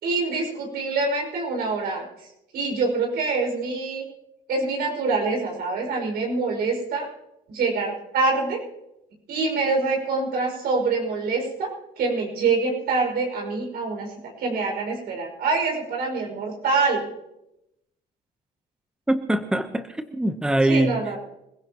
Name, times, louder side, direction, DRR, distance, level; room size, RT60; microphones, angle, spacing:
voice 1, 0.0-2.1 2.5-4.0 4.5-7.1 7.5-8.6 9.3-11.7 12.0-14.1 14.4-17.1 20.6-21.2, right 3 dB, 70° right, 0 dB, 5.9 m, -25 dB
voice 2, 19.1-21.0, right 1 dB, 5° right, 8 dB, 1.0 m, -23 dB
26.5 x 16.0 x 3.0 m, 0.88 s
cardioid pair, 110°, 17 cm